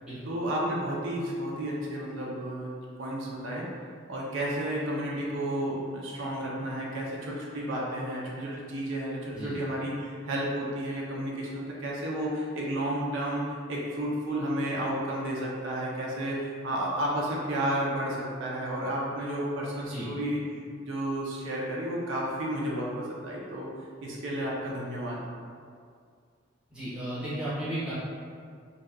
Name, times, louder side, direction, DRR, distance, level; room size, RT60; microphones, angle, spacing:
voice 1, 0.2-2.7 3.0-3.7 4.1-20.4 20.8-23.7 24.0-25.2, right 1 dB, 80° right, -4 dB, 0.5 m, -32 dB
voice 2, 26.7-27.9, right 1 dB, 5° right, -11 dB, 0.7 m, -34 dB
2.7 x 2.2 x 2.3 m, 2.1 s
head